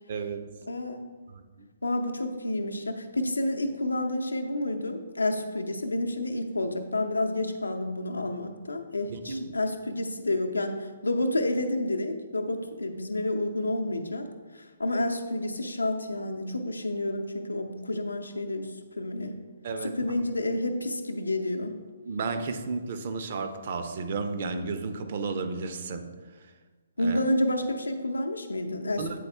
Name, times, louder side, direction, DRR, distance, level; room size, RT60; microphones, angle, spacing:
voice 1, 0.1-0.5 1.3-1.7 9.1-9.6 19.6-20.0 22.0-26.1 27.0-27.2 29.0-29.2, right 4 dB, 45° right, 7 dB, 0.6 m, -33 dB
voice 2, 0.7-1.3 1.8-14.3 14.5-19.4 19.8-21.8 27.0-29.2, left 1 dB, 75° left, 5 dB, 0.6 m, -30 dB
8.4 x 4.0 x 3.3 m, 1.4 s
figure-of-eight pair, 130°, 0 cm